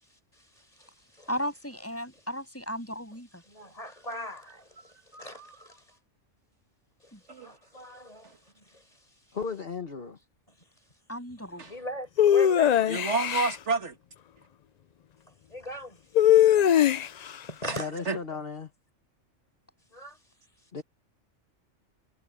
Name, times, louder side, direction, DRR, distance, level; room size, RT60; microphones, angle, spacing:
voice 1, 0.0-1.3 2.2-2.3 3.5-6.0 7.0-9.4 10.6-10.7 11.6-12.9 15.5-17.8 19.9-20.2 20.6-20.7, left 1 dB, 30° left, 5.4 m, -42 dB
voice 2, 1.3-3.4 7.1-7.2 11.1-11.6, equal, 10° left, 7.3 m, -35 dB
voice 3, 5.1-5.5 7.3-7.5 11.6-11.7 12.9-14.0 17.6-18.2, right 3 dB, 65° right, 1.8 m, -30 dB
voice 4, 9.3-10.2 17.8-18.7 20.7-20.8, left 5 dB, 50° left, 1.6 m, -35 dB
sound 1, 12.2-13.6 16.1-17.3, left 10 dB, 75° left, 0.3 m, -20 dB
omnidirectional pair, 1.3 m